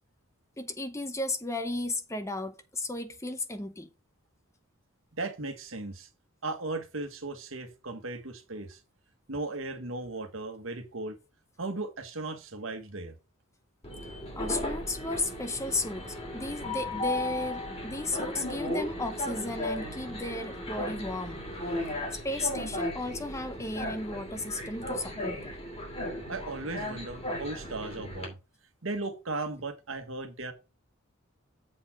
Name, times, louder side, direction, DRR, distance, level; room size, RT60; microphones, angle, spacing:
voice 1, 0.6-3.9 14.4-21.4 22.1-25.5, left 2 dB, 15° left, 0.7 m, -34 dB
voice 2, 5.2-6.1 6.4-8.8 9.3-11.2 11.6-13.1 26.3-28.4 28.8-30.5, right 2 dB, 70° right, 1.4 m, -36 dB
Train, 13.8-28.3, left 1 dB, 30° left, 2.8 m, -36 dB
7.6 x 4.2 x 5.8 m
head